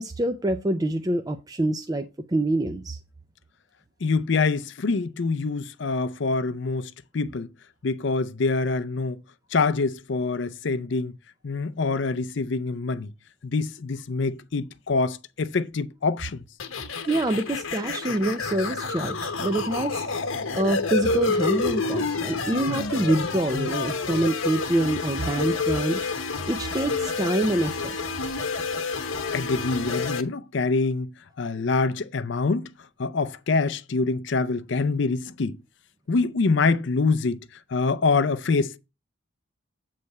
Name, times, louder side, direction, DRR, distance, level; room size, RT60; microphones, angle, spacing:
voice 1, 0.0-3.0 17.1-20.0 20.5-26.1 26.5-28.0, right 1 dB, 20° right, 0.4 m, -26 dB
voice 2, 4.0-7.5 7.8-9.2 9.5-11.1 11.4-13.1 13.4-16.4 22.7-22.8 29.3-31.1 31.4-32.7 33.0-35.6 36.1-37.4 37.7-38.8, left 4 dB, 60° left, 0.5 m, -25 dB
sound 1, 16.6-30.2, left 4 dB, 85° left, 1.0 m, -29 dB
sound 2, 18.4-23.4, right 3 dB, 65° right, 0.6 m, -44 dB
8.2 x 3.3 x 6.5 m
head